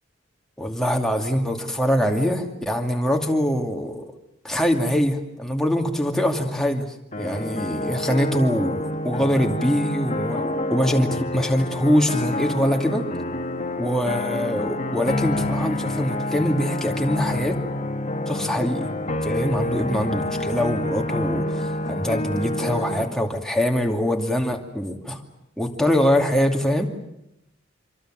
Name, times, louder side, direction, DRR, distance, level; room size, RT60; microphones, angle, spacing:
voice 1, 0.6-4.1 4.4-6.9 7.2-13.1 13.8-17.6 18.3-18.9 19.2-25.2 25.6-26.9, equal, 5° left, 2 dB, 2.5 m, -23 dB
sound 1, 7.1-23.1, left 1 dB, 40° left, 1.9 m, -28 dB
26.0 x 25.5 x 7.7 m, 0.83 s
head